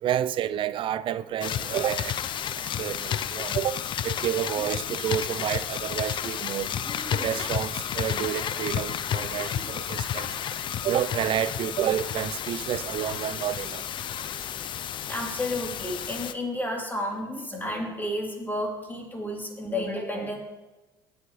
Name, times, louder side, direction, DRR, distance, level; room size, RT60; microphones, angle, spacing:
voice 1, 0.0-2.2 2.8-6.7 7.1-10.3 10.8-13.8, right 11 dB, 45° right, 0.6 m, -29 dB
sound 1, 1.4-16.3, left 9 dB, 45° left, 0.7 m, -31 dB
voice 2, 4.5-4.9 6.8-7.3 9.2-9.6 15.1-20.4, left 1 dB, 15° left, 3.5 m, -32 dB
20.0 x 7.2 x 3.3 m
hypercardioid pair, 65°, 12 cm